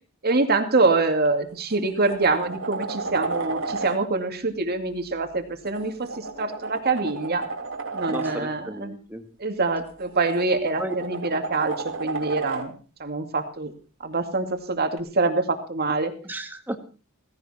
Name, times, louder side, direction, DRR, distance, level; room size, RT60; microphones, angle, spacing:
voice 1, 0.2-7.4 7.9-9.0 9.4-12.7 13.0-13.7 14.0-16.1, right 3 dB, 50° right, 6 dB, 2.5 m, -25 dB
sound 1, 1.1-1.3 1.7-4.0 5.6-8.4 9.9-12.7 15.0-15.1, right 3 dB, 70° right, 2.9 m, -32 dB
voice 2, 8.1-9.2 10.8-10.9 16.2-16.8, right 1 dB, 10° right, 5 dB, 2.1 m, -33 dB
17.5 x 16.5 x 4.4 m, 0.36 s
head